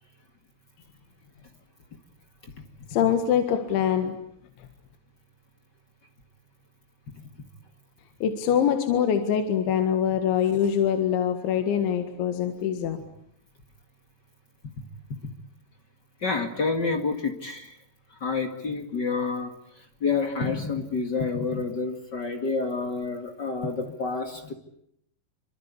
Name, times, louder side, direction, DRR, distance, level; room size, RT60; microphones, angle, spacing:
voice 1, 2.9-4.1 8.2-13.0, left 8 dB, 75° left, 6 dB, 4.0 m, -24 dB
voice 2, 16.2-17.8 18.1-24.5, left 4 dB, 55° left, 5 dB, 1.1 m, -29 dB
28.0 x 25.5 x 8.4 m, 0.74 s
omnidirectional pair, 5.5 m